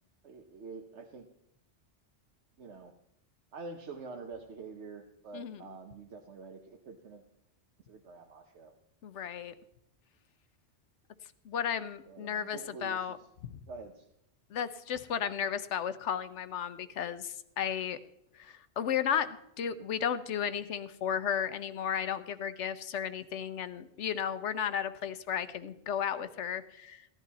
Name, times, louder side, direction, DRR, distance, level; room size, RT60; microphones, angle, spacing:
voice 1, 0.2-1.3 2.6-2.9 3.5-7.2 7.9-8.7 12.0-13.2 13.7-14.0, right 4 dB, 75° right, 3 dB, 1.2 m, -46 dB
voice 2, 5.3-5.8 9.0-9.5 11.4-13.2 13.4-13.5 14.5-18.0 18.3-27.0, left 8 dB, 80° left, 12 dB, 1.1 m, -34 dB
15.5 x 11.0 x 4.1 m, 0.80 s
omnidirectional pair, 1.2 m